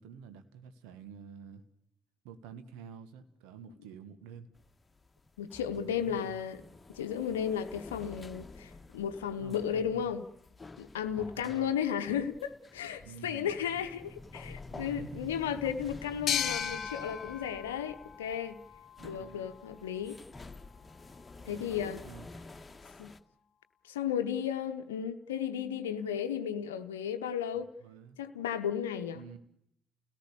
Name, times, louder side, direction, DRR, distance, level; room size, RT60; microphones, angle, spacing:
voice 1, 0.0-1.6 2.2-4.5 5.8-6.4 9.4-10.1 11.3-11.8 13.0-13.6 14.7-15.8 19.0-19.5 21.5-21.7 22.0-22.3 27.5-28.2 29.1-29.4, right 7 dB, 75° right, 1.6 m, -49 dB
sound 1, 4.5-23.2, left 3 dB, 25° left, 1.6 m, -50 dB
voice 2, 5.4-6.6 6.9-10.2 10.8-18.6 19.0-20.2 21.5-22.0 23.0-23.1 23.8-27.7 28.2-29.2, left 8 dB, 85° left, 0.8 m, -34 dB
sound 2, 16.3-19.6, left 8 dB, 55° left, 1.3 m, -36 dB
29.5 x 17.5 x 6.9 m
hypercardioid pair, 45°, 0 cm